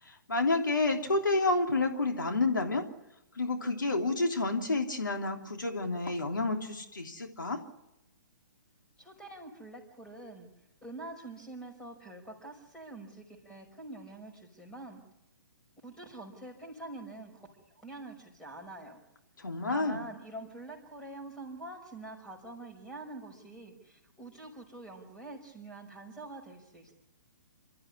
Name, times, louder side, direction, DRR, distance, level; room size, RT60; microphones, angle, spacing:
voice 1, 0.0-2.8 3.3-7.6 19.4-20.0, left 3 dB, 75° left, 2 dB, 3.1 m, -29 dB
voice 2, 9.0-10.5 10.8-15.0 15.8-19.0 19.7-26.9, right 2 dB, 5° left, 1 dB, 5.6 m, -46 dB
28.0 x 14.0 x 9.8 m, 0.90 s
figure-of-eight pair, 125°, 10 cm